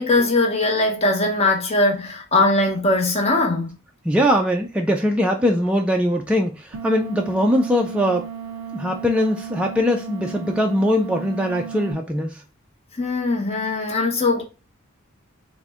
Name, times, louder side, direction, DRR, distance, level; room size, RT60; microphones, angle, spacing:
voice 1, 0.0-3.8 13.0-14.4, left 2 dB, 30° left, 0.8 m, -20 dB
voice 2, 4.1-8.2 8.7-12.3, equal, 5° right, 0.3 m, -21 dB
sound 1, 6.7-11.9, right 7 dB, 70° right, 0.5 m, -34 dB
3.8 x 2.1 x 3.4 m
head